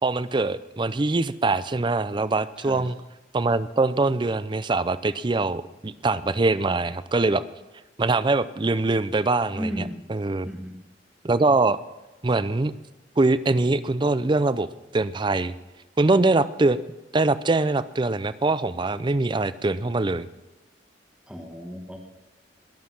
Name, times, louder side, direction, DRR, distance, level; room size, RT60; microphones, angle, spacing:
voice 1, 0.0-3.0 3.3-7.4 8.0-10.5 11.2-11.8 12.2-12.7 13.2-14.7 14.9-15.5 16.0-16.8 17.1-20.3, right 3 dB, 25° right, 15 dB, 0.5 m, -23 dB
voice 2, 2.6-2.9 9.5-10.0 10.4-10.8 21.3-22.0, equal, 5° right, 1 dB, 1.4 m, -34 dB
21.0 x 7.5 x 5.9 m, 1.1 s
head